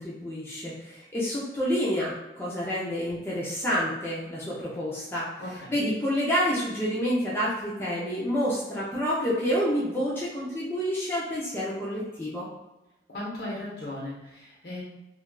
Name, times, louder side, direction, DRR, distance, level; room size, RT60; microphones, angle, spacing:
voice 1, 0.0-5.3 5.7-12.5, equal, 15° left, -7 dB, 0.5 m, -28 dB
voice 2, 5.4-5.8 13.1-14.8, left 1 dB, 65° left, -5 dB, 1.1 m, -37 dB
3.2 x 2.4 x 2.2 m, 0.99 s
head